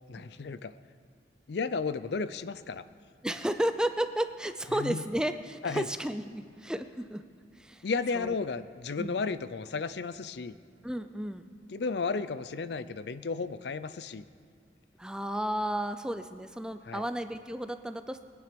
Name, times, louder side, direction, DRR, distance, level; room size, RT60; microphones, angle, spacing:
voice 1, 0.1-0.7 1.5-2.8 4.7-5.0 5.6-5.9 7.8-10.6 11.7-14.2 16.9-17.0, left 4 dB, 65° left, 14 dB, 0.5 m, -33 dB
voice 2, 3.2-7.2 7.6-7.8 8.1-8.3 9.0-9.2 10.8-11.5 15.0-18.2, right 1 dB, 5° right, 9 dB, 0.5 m, -33 dB
21.5 x 9.8 x 5.2 m, 2.2 s
head